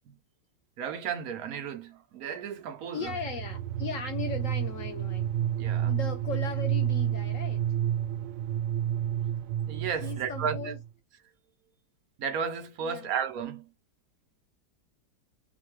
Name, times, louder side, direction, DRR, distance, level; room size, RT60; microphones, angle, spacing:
voice 1, 0.8-3.1 5.6-5.9 9.7-10.7 12.2-13.7, right 7 dB, 65° right, 1.0 m, -33 dB
voice 2, 2.9-5.3 5.8-7.6 10.0-10.8 12.8-13.1, left 5 dB, 70° left, 0.7 m, -37 dB
sound 1, 3.1-10.9, right 10 dB, 85° right, 1.2 m, -30 dB
3.1 x 2.2 x 3.0 m
omnidirectional pair, 1.9 m